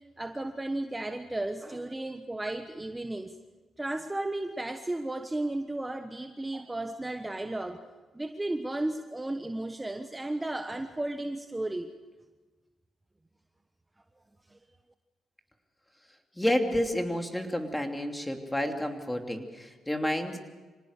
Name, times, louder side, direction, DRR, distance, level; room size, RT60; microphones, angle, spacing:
voice 1, 0.2-3.3 3.8-11.9 14.5-14.6, right 2 dB, 15° right, 7 dB, 1.2 m, -34 dB
voice 2, 16.4-20.4, left 1 dB, 10° left, 4 dB, 2.9 m, -30 dB
26.0 x 18.5 x 6.7 m, 1.3 s
cardioid pair, 80°, 0 cm